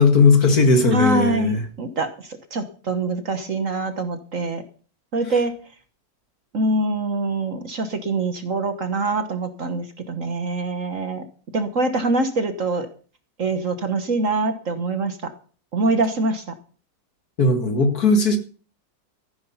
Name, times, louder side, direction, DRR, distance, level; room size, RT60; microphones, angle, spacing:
voice 1, 0.0-1.6 17.4-18.4, left 3 dB, 55° left, 6 dB, 2.5 m, -17 dB
voice 2, 0.9-4.6 5.1-5.5 6.5-11.2 11.5-12.9 13.4-15.3 15.7-16.4, right 2 dB, 50° right, 9 dB, 1.5 m, -24 dB
14.5 x 9.8 x 5.7 m, 0.40 s
omnidirectional pair, 2.0 m